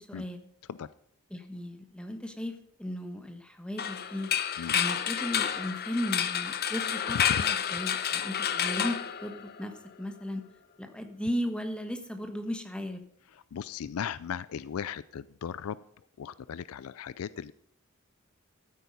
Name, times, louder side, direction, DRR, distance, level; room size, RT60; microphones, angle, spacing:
voice 1, 0.1-0.5 1.3-4.3 4.7-9.7 10.0-10.4 10.8-13.0, left 1 dB, 5° left, 6 dB, 1.3 m, -36 dB
sound 1, 3.8-9.8, left 8 dB, 45° left, 0.8 m, -30 dB
voice 2, 13.5-15.8 16.2-17.5, left 8 dB, 70° left, 17 dB, 0.4 m, -37 dB
14.0 x 8.3 x 5.4 m, 0.69 s
head